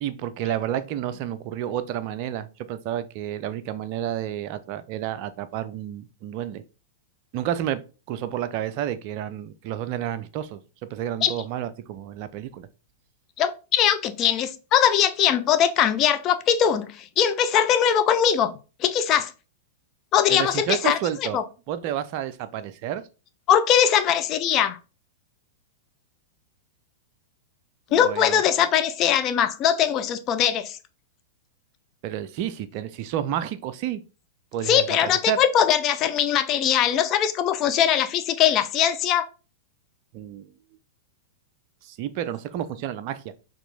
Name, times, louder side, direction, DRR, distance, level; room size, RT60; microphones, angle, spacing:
voice 1, 0.0-6.6 7.3-10.6 10.9-12.7 20.3-21.4 21.7-23.0 27.9-28.4 32.0-34.0 34.5-35.4 40.1-40.5 41.8-43.2, right 11 dB, 40° right, 0.4 m, -30 dB
voice 2, 13.4-18.5 18.8-19.3 20.1-21.4 23.5-24.8 27.9-30.8 34.7-39.3, left 9 dB, 30° left, 0.5 m, -21 dB
4.4 x 3.0 x 3.9 m
figure-of-eight pair, 100°, 0 cm